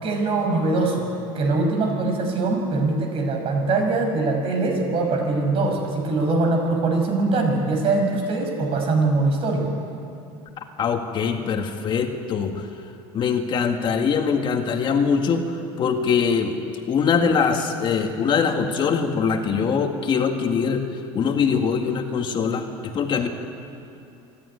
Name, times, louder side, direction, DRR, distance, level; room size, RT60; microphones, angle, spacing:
voice 1, 0.0-1.1 1.3-9.7, right 3 dB, 50° right, 3 dB, 5.5 m, -22 dB
voice 2, 10.8-12.7 13.1-16.6 16.9-20.8 21.1-23.3, left 6 dB, 40° left, 4 dB, 1.9 m, -22 dB
26.0 x 12.5 x 9.8 m, 2.6 s
cardioid pair, 120°, 12 cm